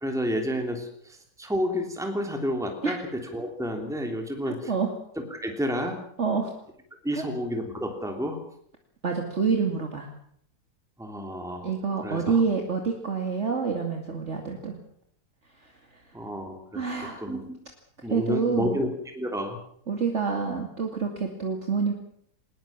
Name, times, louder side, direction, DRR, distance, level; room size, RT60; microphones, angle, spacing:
voice 1, 0.0-4.7 5.3-6.0 7.0-8.4 11.0-11.7 12.0-12.4 16.1-17.4 18.0-18.9 19.1-19.6, equal, ahead, 3 dB, 3.1 m, -30 dB
voice 2, 4.5-4.9 6.2-6.5 7.1-7.3 9.0-10.1 11.6-14.7 15.6-16.0 16.7-17.2 18.1-18.8 19.9-21.9, right 5 dB, 45° right, 2 dB, 2.7 m, -27 dB
21.0 x 20.0 x 7.4 m, 0.66 s
omnidirectional pair, 1.8 m